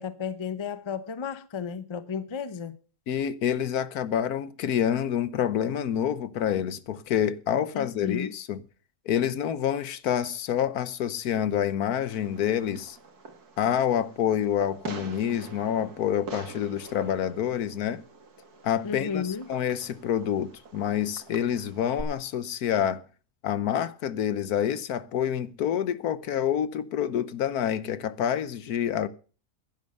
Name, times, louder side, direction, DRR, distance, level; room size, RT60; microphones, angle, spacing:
voice 1, 0.0-2.8 7.7-8.3 18.8-19.5, left 6 dB, 25° left, 0.6 m, -33 dB
voice 2, 3.1-8.6 9.1-13.0 13.6-18.0 18.6-19.2 19.5-23.0 23.4-29.1, left 9 dB, 75° left, 1.3 m, -27 dB
Fireworks, 12.0-22.0, right 4 dB, 75° right, 2.4 m, -45 dB
10.5 x 10.5 x 6.6 m
omnidirectional pair, 1.6 m